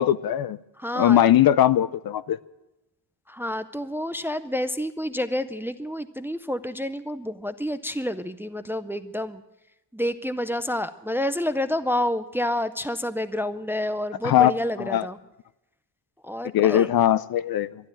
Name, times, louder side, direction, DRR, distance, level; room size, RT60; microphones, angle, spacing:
voice 1, 0.0-0.6 1.0-2.4 14.2-14.5 14.8-15.1 16.5-17.7, left 11 dB, 55° left, 17 dB, 0.5 m, -20 dB
voice 2, 0.8-1.2 3.3-9.4 9.9-15.2 16.2-16.9, left 1 dB, 5° right, 12 dB, 0.4 m, -29 dB
12.0 x 11.0 x 8.9 m, 0.95 s
wide cardioid pair, 140°, 43 cm